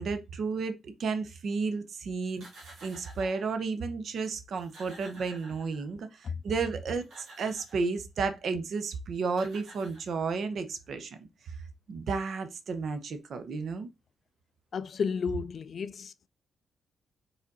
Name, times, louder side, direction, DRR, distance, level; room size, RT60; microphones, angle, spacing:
voice 1, 0.0-2.4 2.8-11.3 11.9-13.9, right 4 dB, 55° right, 0.9 m, -32 dB
sound 1, 2.2-3.6 4.2-4.3 4.5-6.1 6.8-7.9 8.9-9.0 9.3-10.5, right 2 dB, 70° right, 2.9 m, -51 dB
voice 2, 14.7-16.3, left 6 dB, 45° left, 0.4 m, -32 dB
5.0 x 4.9 x 4.0 m
wide cardioid pair, 165°, 0 cm